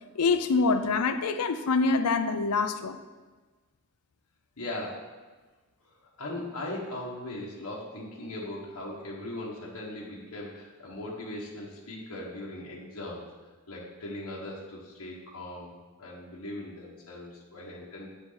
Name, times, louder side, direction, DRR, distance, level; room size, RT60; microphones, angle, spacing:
voice 1, 0.2-3.0, left 4 dB, 85° left, 9 dB, 0.5 m, -25 dB
voice 2, 4.6-5.1 6.2-13.2 13.7-15.7 16.0-18.1, left 1 dB, 65° left, -4 dB, 1.5 m, -39 dB
8.9 x 7.2 x 4.1 m, 1.3 s
head